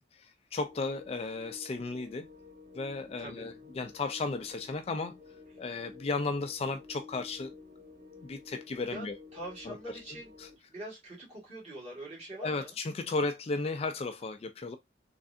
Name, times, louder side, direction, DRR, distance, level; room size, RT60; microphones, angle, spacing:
voice 1, 0.1-2.3 2.7-5.2 5.6-7.5 8.2-9.2 9.7-9.8 10.4-10.5 12.4-14.8, left 3 dB, 30° left, 0.3 m, -34 dB
sound 1, 0.6-10.6, left 4 dB, 50° right, 2.0 m, -52 dB
voice 2, 3.2-3.5 8.9-9.1 9.3-10.3 10.7-12.8, right 1 dB, 35° right, 2.0 m, -43 dB
3.5 x 3.2 x 2.6 m
head